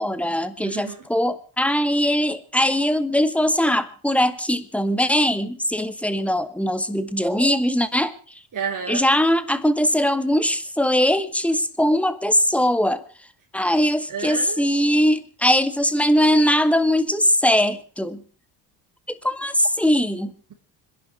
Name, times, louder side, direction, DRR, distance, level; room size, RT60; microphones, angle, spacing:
voice 1, 0.0-8.1 8.9-13.0 13.5-18.2 19.1-20.3, equal, 5° left, 12 dB, 1.8 m, -21 dB
voice 2, 0.6-1.0 8.5-9.0 14.1-14.7, right 6 dB, 40° right, 0 dB, 3.4 m, -31 dB
25.5 x 11.0 x 4.8 m, 0.39 s
supercardioid pair, 80°, 47 cm